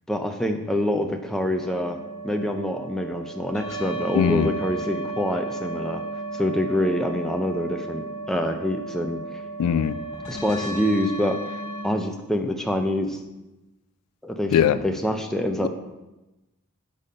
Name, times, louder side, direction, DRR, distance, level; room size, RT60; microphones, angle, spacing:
voice 1, 0.1-2.0 2.2-6.0 6.3-9.4 10.3-11.6 11.8-13.2 14.2-15.7, left 1 dB, ahead, 4 dB, 0.3 m, -26 dB
sound 1, 1.5-11.8, right 2 dB, 55° left, 2.0 m, -34 dB
voice 2, 4.2-4.5 9.6-10.0 14.5-14.8 15.6-15.7, left 8 dB, 85° left, 15 dB, 0.3 m, -20 dB
5.2 x 4.2 x 5.0 m, 1.0 s
head